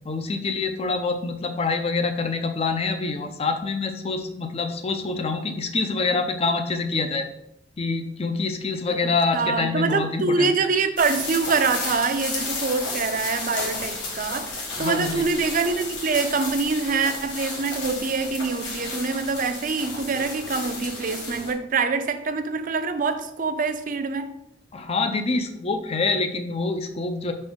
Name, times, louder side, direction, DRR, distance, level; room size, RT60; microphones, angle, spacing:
voice 1, 0.0-7.3 7.8-10.5 14.8-15.2 24.7-27.3, left 3 dB, 35° left, 0.6 m, -26 dB
voice 2, 8.9-24.3, right 4 dB, 50° right, 0.5 m, -25 dB
sound 1, 11.0-21.5, left 3 dB, 85° left, 1.6 m, -33 dB
5.8 x 4.3 x 3.7 m
head